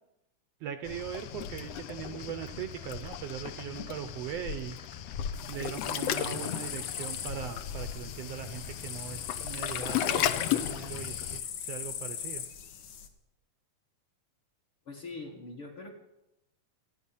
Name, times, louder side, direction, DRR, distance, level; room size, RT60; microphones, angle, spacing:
voice 1, 0.6-4.8 5.4-12.4, right 9 dB, 75° right, 9 dB, 1.5 m, -40 dB
Waves surf, 0.8-11.4, left 10 dB, 80° left, 1.5 m, -35 dB
sound 1, 1.5-6.0 6.3-6.4, equal, 15° left, 1.1 m, -57 dB
sound 2, 5.3-13.1, left 8 dB, 65° left, 2.4 m, -40 dB
voice 2, 14.9-15.9, left 3 dB, 50° left, -1 dB, 1.9 m, -42 dB
27.5 x 9.3 x 5.7 m, 0.92 s
omnidirectional pair, 3.8 m